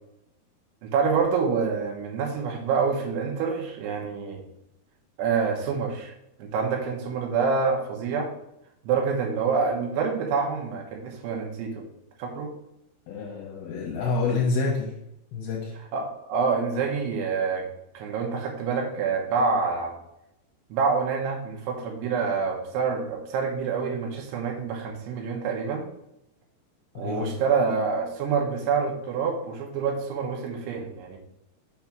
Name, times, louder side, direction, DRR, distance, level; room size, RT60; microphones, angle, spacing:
voice 1, 0.8-4.4 5.2-6.1 6.4-8.3 8.8-11.8 12.2-12.5 15.9-17.7 17.9-20.0 20.7-25.8 27.0-31.2, right 5 dB, 75° right, 2 dB, 2.9 m, -27 dB
voice 2, 13.1-14.9 15.3-15.7 26.9-27.3, left 4 dB, 70° left, -2 dB, 2.6 m, -28 dB
7.0 x 3.1 x 5.8 m, 0.83 s
omnidirectional pair, 5.1 m